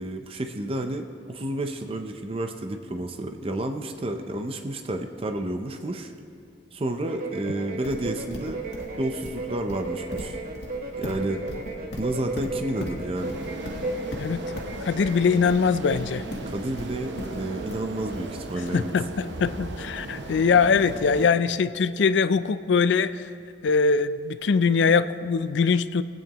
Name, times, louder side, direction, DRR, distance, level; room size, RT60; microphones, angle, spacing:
voice 1, 0.0-6.1 6.7-8.6 9.0-10.4 10.9-11.4 11.9-13.4 16.5-18.9, right 1 dB, 30° right, 5 dB, 0.6 m, -30 dB
sound 1, 7.0-15.6, right 2 dB, 55° right, 1.1 m, -35 dB
Livestock farm animals working animals, 7.8-18.7, left 1 dB, 65° left, 1.5 m, -38 dB
sound 2, 13.1-21.3, right 2 dB, 85° right, 0.8 m, -37 dB
voice 2, 14.8-16.2 18.7-23.3 23.6-26.0, left 5 dB, 80° left, 13 dB, 0.4 m, -22 dB
22.0 x 8.9 x 3.0 m, 2.4 s
head